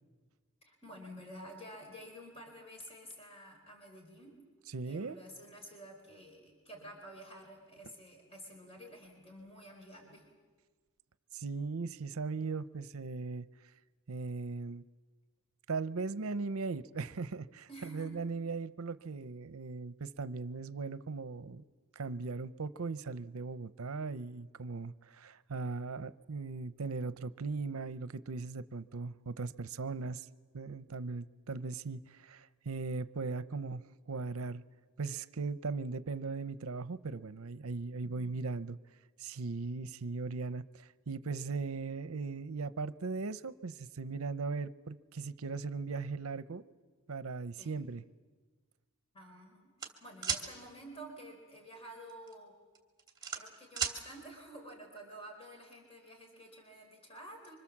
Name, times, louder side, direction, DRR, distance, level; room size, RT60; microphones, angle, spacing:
voice 1, 0.6-4.4 4.8-10.3 17.7-18.2 38.0-38.4 47.6-47.9 49.1-52.5 53.3-57.5, right 1 dB, 25° left, 4.4 m, -50 dB
voice 2, 4.7-5.2 11.3-13.5 14.1-14.8 15.7-21.6 22.0-30.3 30.5-33.8 34.1-34.6 35.0-38.8 39.2-46.6 47.1-48.0, right 4 dB, 70° right, 0.7 m, -38 dB
sound 1, 49.8-50.4 52.1-52.3 52.7-54.0, right 7 dB, 20° right, 2.6 m, -34 dB
26.5 x 25.0 x 7.3 m
head